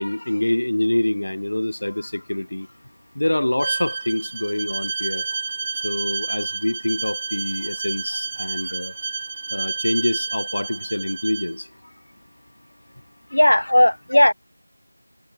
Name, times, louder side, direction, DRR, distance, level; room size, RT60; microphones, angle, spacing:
voice 1, 0.0-2.7 3.1-5.4 5.8-9.0 9.5-11.7 13.3-13.7, left 1 dB, 50° left, 3.3 m, -26 dB
Bowed string instrument, 3.6-11.5, right 4 dB, 15° right, 0.9 m, -30 dB
voice 2, 13.3-14.3, left 1 dB, 70° left, 1.5 m, -16 dB
figure-of-eight pair, 175°, 0 cm